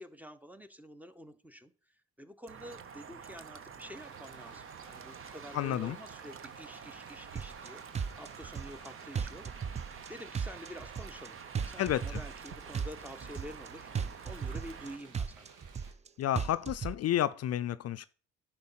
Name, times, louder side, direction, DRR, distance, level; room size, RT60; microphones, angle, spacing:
voice 1, 0.0-1.7 2.2-7.8 8.2-9.4 10.1-11.4 11.6-13.9 14.2-15.5, equal, 5° right, 0.8 m, -48 dB
sound 1, 2.5-15.0, right 6 dB, 45° right, 0.9 m, -48 dB
sound 2, 3.9-15.9, right 5 dB, 85° right, 1.8 m, -56 dB
voice 2, 5.5-6.0 11.8-12.0 16.2-18.1, left 12 dB, 55° left, 0.4 m, -30 dB
sound 3, 7.4-7.7 7.9-8.9 9.2-10.1 10.3-11.3 11.6-12.5 12.7-13.7 14.0-14.9 15.1-16.1 16.4-17.0, right 6 dB, 25° right, 0.4 m, -36 dB
10.5 x 4.6 x 5.6 m
cardioid pair, 90°, 30 cm